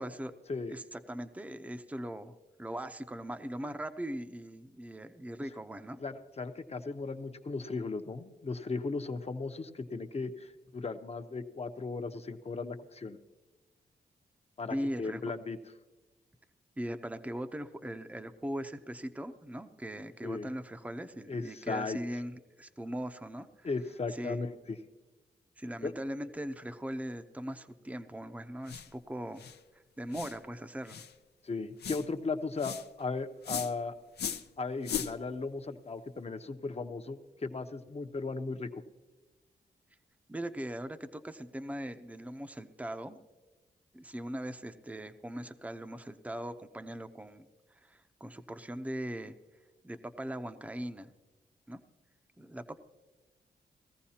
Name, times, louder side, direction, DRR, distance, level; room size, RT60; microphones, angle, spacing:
voice 1, 0.0-0.3 0.7-6.0 14.7-15.2 16.8-23.7 24.1-24.4 25.6-29.4 30.0-31.0 40.3-43.2 43.9-49.4 49.8-51.1 51.7-51.8 52.4-52.8, right 1 dB, 10° right, 8 dB, 0.7 m, -40 dB
voice 2, 6.0-13.2 14.6-15.6 20.2-20.5 21.3-22.0 23.6-24.8 25.8-25.9 31.4-33.9 34.6-38.8, left 3 dB, 35° left, 8 dB, 0.9 m, -36 dB
sound 1, 28.7-28.9 29.4-29.6 30.1-30.4 30.9-31.1 31.8-32.1 32.6-32.9 33.4-33.7 34.2-34.5 34.8-35.1, left 8 dB, 75° left, 0.6 m, -37 dB
19.5 x 14.5 x 2.9 m, 1.2 s
cardioid pair, 75°, 17 cm